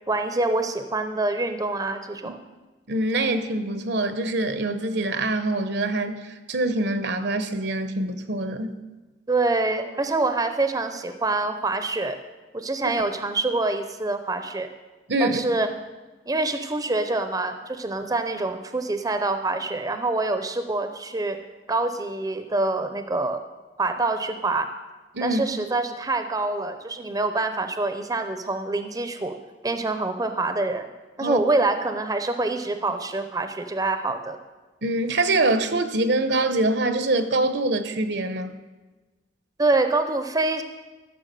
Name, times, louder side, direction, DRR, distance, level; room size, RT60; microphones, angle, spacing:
voice 1, 0.1-2.4 9.3-12.2 12.5-14.7 15.2-15.7 16.3-21.4 21.7-23.4 23.8-24.7 25.2-29.4 29.6-30.9 31.2-34.4 39.6-40.6, right 2 dB, 20° right, 8 dB, 0.7 m, -25 dB
voice 2, 2.9-8.8 15.1-15.4 25.1-25.4 31.2-31.4 34.8-38.5, right 2 dB, 65° right, 10 dB, 0.9 m, -24 dB
14.0 x 6.9 x 6.8 m, 1.2 s
head